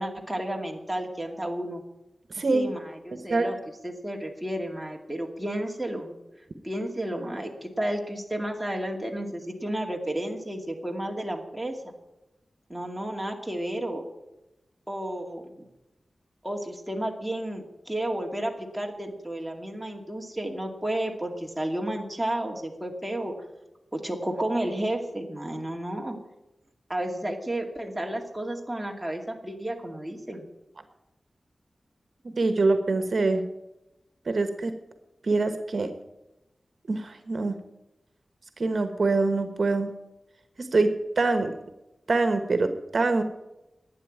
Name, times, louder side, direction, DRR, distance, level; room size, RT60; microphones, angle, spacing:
voice 1, 0.0-1.8 2.5-3.6 3.8-6.1 6.6-11.9 12.7-14.0 14.9-15.6 16.4-23.3 23.9-26.2 26.9-30.5, right 1 dB, 5° right, 1 dB, 2.3 m, -32 dB
voice 2, 2.3-2.7 3.3-3.5 32.4-33.4 34.3-34.7 35.2-35.9 36.9-37.6 38.6-39.9 40.6-41.5 42.1-43.2, right 3 dB, 60° right, 8 dB, 1.2 m, -24 dB
11.5 x 9.7 x 8.9 m, 0.96 s
wide cardioid pair, 90°, 0 cm